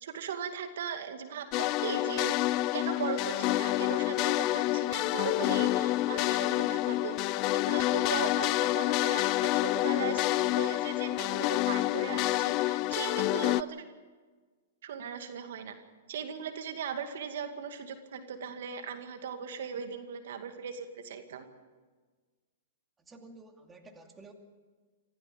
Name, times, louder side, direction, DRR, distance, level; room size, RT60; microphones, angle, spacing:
voice 1, 0.0-2.4 2.7-7.2 7.5-13.8 14.8-15.7 16.1-21.4, right 7 dB, 70° right, 7 dB, 2.2 m, -38 dB
sound 1, 1.5-13.6, left 17 dB, 40° left, 0.5 m, -28 dB
voice 2, 23.0-24.3, right 2 dB, 15° right, 3 dB, 2.6 m, -52 dB
25.5 x 16.0 x 6.9 m, 1.4 s
hypercardioid pair, 125°, 0 cm